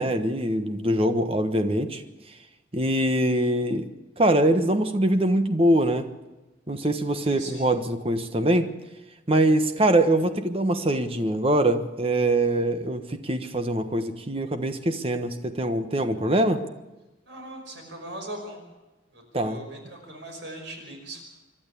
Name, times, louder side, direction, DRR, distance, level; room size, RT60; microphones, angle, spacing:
voice 1, 0.0-2.0 2.7-3.8 4.2-6.1 6.7-8.7 9.3-16.6 19.3-19.6, right 1 dB, 30° right, 8 dB, 1.3 m, -23 dB
voice 2, 7.2-7.7 17.3-18.6 19.1-21.2, right 1 dB, 70° right, 3 dB, 5.5 m, -40 dB
26.5 x 11.5 x 8.5 m, 1.1 s
head